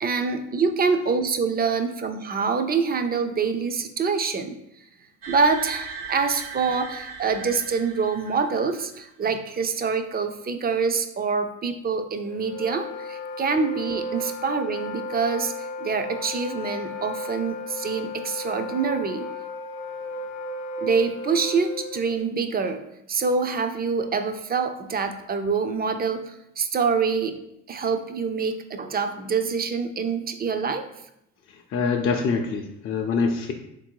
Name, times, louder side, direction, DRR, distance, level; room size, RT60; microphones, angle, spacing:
voice 1, 0.0-4.6 5.3-19.3 20.8-22.8 23.1-27.4 27.7-30.9, right 5 dB, 30° right, 8 dB, 0.4 m, -25 dB
sound 1, 5.2-9.0, right 5 dB, 85° right, 0.8 m, -38 dB
Wind instrument woodwind instrument, 12.3-22.2, left 2 dB, 90° left, 0.6 m, -34 dB
voice 2, 31.7-33.5, left 5 dB, 40° left, 2 dB, 0.5 m, -24 dB
3.5 x 2.6 x 4.5 m, 0.81 s
supercardioid pair, 70°, 34 cm